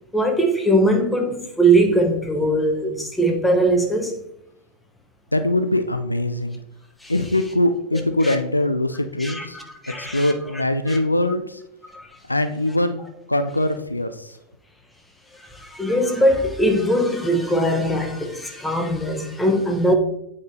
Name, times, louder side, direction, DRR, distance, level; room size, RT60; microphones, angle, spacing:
voice 1, 0.1-4.1 7.0-7.1 7.9-8.4 9.2-10.6 10.9-11.0 11.9-12.1 15.4-19.9, right 1 dB, 5° left, 1.0 m, -21 dB
voice 2, 5.3-6.6 7.1-9.6 10.0-11.6 12.3-13.0 13.3-14.4, left 1 dB, 85° left, 0.4 m, -22 dB
8.3 x 5.0 x 2.8 m
figure-of-eight pair, 90°, 0 cm